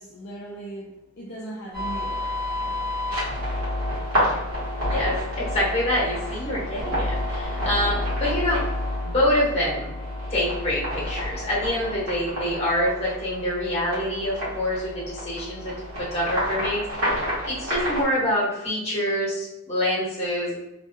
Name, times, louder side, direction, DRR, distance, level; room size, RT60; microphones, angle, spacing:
voice 1, 0.0-2.9, right 1 dB, 50° left, -5 dB, 0.5 m, -39 dB
sound 1, 1.7-18.0, left 1 dB, 85° right, 1.4 m, -29 dB
voice 2, 4.9-8.6 9.0-9.9 10.3-15.8 16.1-17.2 17.4-20.5, left 1 dB, 30° left, -6 dB, 1.2 m, -26 dB
3.2 x 2.2 x 2.9 m, 0.98 s
head